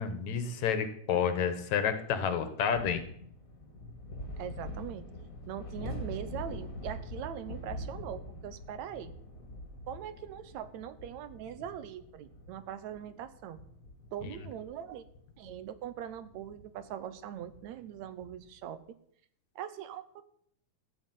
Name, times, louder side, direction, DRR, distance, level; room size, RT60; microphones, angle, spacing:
voice 1, 0.0-3.0 14.2-14.3, left 7 dB, 70° left, 9 dB, 2.5 m, -30 dB
sound 1, 2.7-18.5, left 1 dB, 30° left, 2.2 m, -45 dB
voice 2, 4.4-5.0 5.5-9.1 9.9-13.6 14.1-15.1 15.4-18.8 19.6-20.2, right 10 dB, 75° right, 13 dB, 2.0 m, -41 dB
14.5 x 6.4 x 9.2 m, 0.68 s
omnidirectional pair, 3.4 m